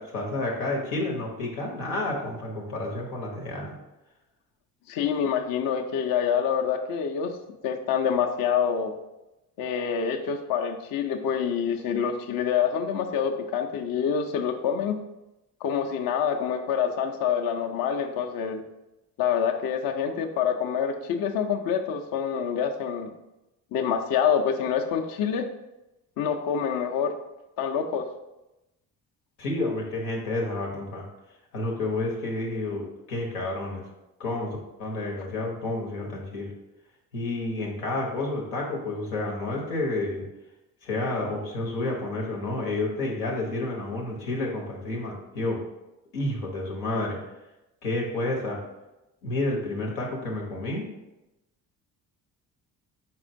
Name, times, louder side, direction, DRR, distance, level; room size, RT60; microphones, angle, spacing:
voice 1, 0.0-3.8 29.4-31.0 31.5-33.8 34.2-36.5 37.1-40.2 40.8-45.6 46.1-47.2 47.8-48.6 49.2-50.9, left 2 dB, 90° left, -1 dB, 0.9 m, -30 dB
voice 2, 4.9-7.4 7.6-8.9 9.6-15.0 15.6-18.6 19.2-23.1 23.7-25.5 26.2-27.1 27.6-28.0, left 7 dB, 50° left, 4 dB, 0.5 m, -26 dB
4.3 x 4.1 x 2.6 m, 0.96 s
hypercardioid pair, 45°, 46 cm